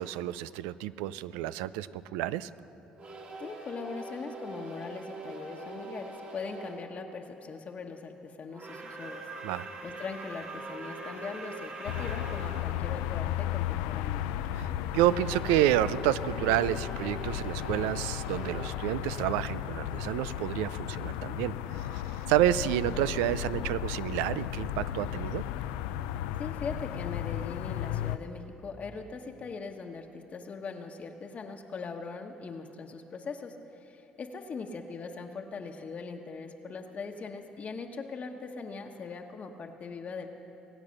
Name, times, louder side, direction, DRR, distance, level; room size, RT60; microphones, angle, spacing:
voice 1, 0.0-2.5 9.4-9.7 14.6-22.0 22.3-25.4, right 13 dB, 85° right, 16 dB, 0.4 m, -29 dB
sound 1, 3.0-6.8 8.5-12.7 15.0-19.8, right 2 dB, 55° right, 3.0 m, -43 dB
voice 2, 3.4-9.2 9.8-14.3 26.4-40.3, left 4 dB, 45° left, 3 dB, 1.2 m, -40 dB
sound 2, 11.9-28.2, left 12 dB, 85° left, 0.4 m, -34 dB
22.0 x 8.9 x 6.5 m, 2.9 s
supercardioid pair, 65°, 3 cm